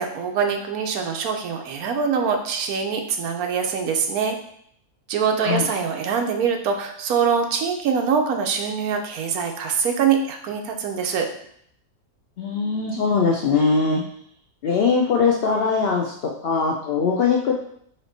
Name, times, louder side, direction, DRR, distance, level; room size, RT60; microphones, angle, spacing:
voice 1, 0.0-4.4 5.1-11.3, right 6 dB, 75° right, 4 dB, 1.1 m, -24 dB
voice 2, 12.4-14.0 14.6-17.5, left 5 dB, 75° left, 0 dB, 0.5 m, -21 dB
4.3 x 2.9 x 4.0 m, 0.68 s
omnidirectional pair, 1.6 m